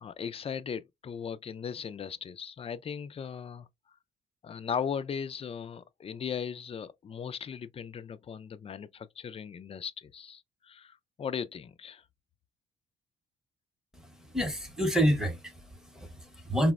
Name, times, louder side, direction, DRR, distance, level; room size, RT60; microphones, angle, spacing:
voice 1, 0.0-3.7 4.4-12.0, left 7 dB, 30° left, 0.3 m, -38 dB
voice 2, 14.3-16.7, equal, 5° right, 0.8 m, -28 dB
4.0 x 2.0 x 2.3 m
cardioid pair, 90°, 20 cm